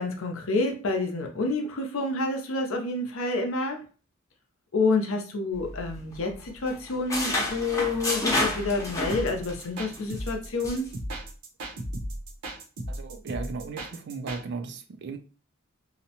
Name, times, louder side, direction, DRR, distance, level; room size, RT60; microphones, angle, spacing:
voice 1, 0.0-3.8 4.7-10.9, left 3 dB, 70° left, 0.6 m, -28 dB
sound 1, 5.5-6.4 6.7-9.6 10.0-10.2 10.6-10.9, left 1 dB, 15° left, 0.6 m, -30 dB
sound 2, 9.1-14.4, right 1 dB, 90° right, 0.7 m, -36 dB
voice 2, 12.9-15.2, right 4 dB, 55° right, 0.4 m, -36 dB
2.7 x 2.1 x 2.8 m
head